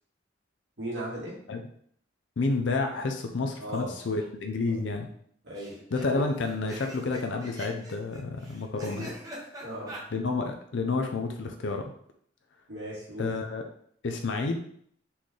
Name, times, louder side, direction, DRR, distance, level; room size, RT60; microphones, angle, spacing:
voice 1, 0.8-1.4 3.6-4.0 5.4-5.8 9.6-10.0 12.7-13.3, right 1 dB, 70° right, -5 dB, 1.8 m, -36 dB
voice 2, 2.4-5.1 5.9-9.1 9.5-9.7 10.1-11.9 13.2-13.6 14.0-14.6, left 3 dB, 70° left, 4 dB, 0.5 m, -30 dB
sound 1, 3.7-4.2 4.5-4.6 4.8-4.9 5.6-10.0, right 1 dB, 20° right, 0.8 m, -43 dB
4.2 x 3.2 x 3.7 m, 0.64 s
head